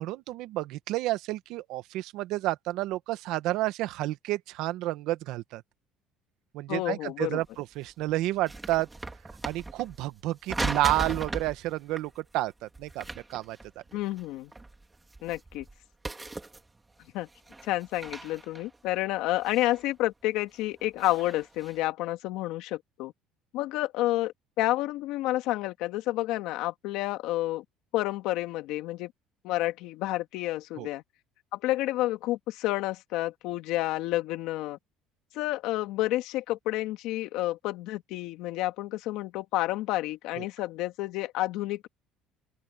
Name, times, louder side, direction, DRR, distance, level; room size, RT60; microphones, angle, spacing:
voice 1, 0.0-5.6 6.5-8.9 9.4-13.6 30.8-30.9 40.4-40.5, right 16 dB, 70° right, 1.3 m, -30 dB
voice 2, 6.7-7.4 13.9-14.5 15.2-15.7 17.1-17.3 17.6-23.1 23.5-27.6 27.9-29.1 29.4-31.0 31.5-34.8 35.3-41.9, left 16 dB, 75° left, 2.1 m, -30 dB
sound 1, 7.5-7.6 7.9-10.1 10.4-11.6 11.9-12.1 12.7-14.2 14.5-15.8 16.0-16.9 17.3-19.9 20.4-21.8, right 2 dB, 15° right, 2.9 m, -38 dB
open air
cardioid pair, 120°, 0 cm